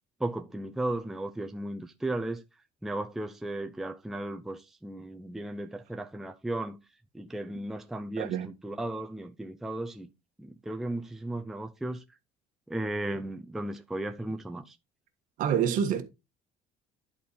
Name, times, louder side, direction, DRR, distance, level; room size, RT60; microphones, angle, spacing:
voice 1, 0.2-2.4 2.8-6.8 7.1-10.1 10.4-12.0 12.7-14.8, right 1 dB, ahead, 0.4 m, -35 dB
voice 2, 8.2-8.5 15.4-16.0, right 8 dB, 55° right, 1.5 m, -27 dB
10.5 x 4.3 x 4.0 m
cardioid pair, 150°, 16 cm